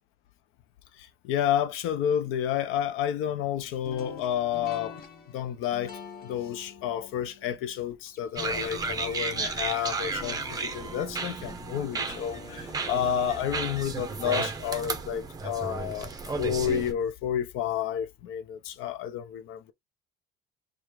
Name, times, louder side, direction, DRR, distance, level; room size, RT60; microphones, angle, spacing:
voice 1, 0.9-5.0 5.3-19.7, left 9 dB, 90° left, 0.7 m, -30 dB
sound 1, 3.8-14.9, left 6 dB, 45° left, 1.0 m, -47 dB
sound 2, 8.4-16.9, right 4 dB, 20° right, 0.6 m, -33 dB
4.9 x 2.3 x 3.0 m
cardioid pair, 155°, 20 cm